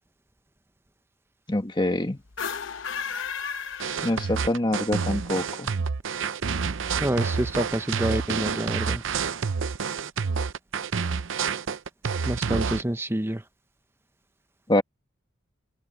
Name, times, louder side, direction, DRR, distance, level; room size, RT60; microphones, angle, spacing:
voice 1, 1.5-2.2 4.0-5.7 14.7-14.8, left 1 dB, 20° left, 1.5 m, -25 dB
sound 1, 2.3-4.6, left 6 dB, 65° left, 0.9 m, -34 dB
sound 2, 3.8-12.8, right 5 dB, 65° right, 0.6 m, -28 dB
voice 2, 7.0-9.0 12.3-13.4, right 1 dB, 10° right, 0.8 m, -27 dB
open air
head